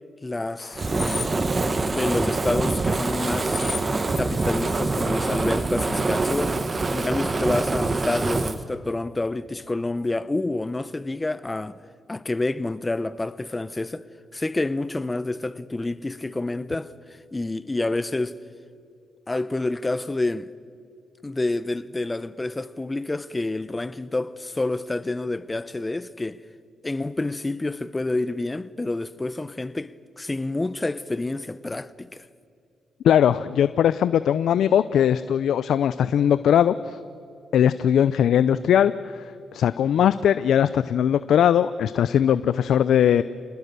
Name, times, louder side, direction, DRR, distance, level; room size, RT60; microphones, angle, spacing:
voice 1, 0.2-0.9 1.6-3.6 4.2-6.6 6.9-11.8 12.1-14.0 14.3-16.9 17.3-18.4 19.3-20.5 21.2-26.4 26.8-32.2, left 2 dB, 20° left, 0.8 m, -28 dB
sound 1, 0.6-5.7, left 7 dB, 60° left, 0.9 m, -39 dB
Fire, 0.8-8.6, right 3 dB, 30° right, 1.3 m, -25 dB
voice 2, 33.0-37.0 37.5-43.2, left 9 dB, 80° left, 0.5 m, -20 dB
28.0 x 20.5 x 6.8 m
cardioid pair, 80°, 0 cm